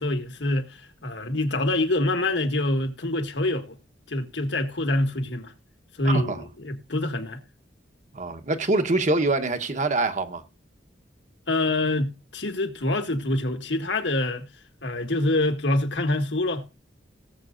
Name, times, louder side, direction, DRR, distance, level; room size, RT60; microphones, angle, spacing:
voice 1, 0.0-3.7 4.1-5.5 6.0-7.4 11.5-14.4 14.8-16.6, left 2 dB, 70° left, 1.7 m, -26 dB
voice 2, 6.0-6.4 8.1-10.4, right 2 dB, 40° right, 1.1 m, -24 dB
18.5 x 7.7 x 2.5 m
head